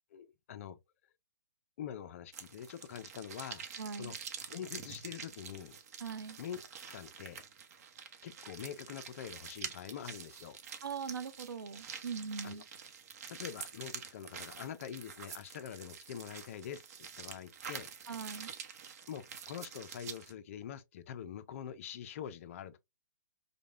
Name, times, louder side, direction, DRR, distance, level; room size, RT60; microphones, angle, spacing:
voice 1, 0.1-0.8 1.8-3.7 4.0-4.2 4.5-5.7 6.4-6.6 6.9-7.4 8.2-10.6 12.4-12.6 13.3-17.9 19.1-22.8, left 9 dB, 40° left, 0.5 m, -45 dB
sound 1, 2.3-20.3, right 7 dB, 45° right, 0.8 m, -47 dB
voice 2, 3.8-4.1 6.0-6.4 10.8-12.6 18.1-18.5, right 6 dB, 90° right, 0.8 m, -41 dB
5.1 x 2.2 x 2.4 m
hypercardioid pair, 150°, 11 cm